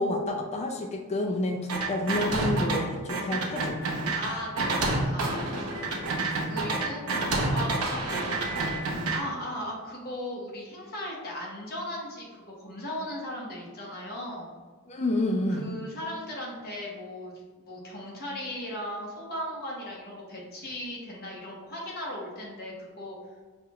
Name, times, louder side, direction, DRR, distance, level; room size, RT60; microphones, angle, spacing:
voice 1, 0.0-3.8 14.9-15.7, left 1 dB, 30° left, 2 dB, 0.4 m, -29 dB
sound 1, 1.7-2.8 3.1-9.2, right 2 dB, 85° right, 0.8 m, -28 dB
voice 2, 4.1-8.7 9.1-14.5 15.5-23.2, left 1 dB, 45° left, -3 dB, 1.1 m, -38 dB
5.8 x 2.4 x 2.9 m, 1.4 s
head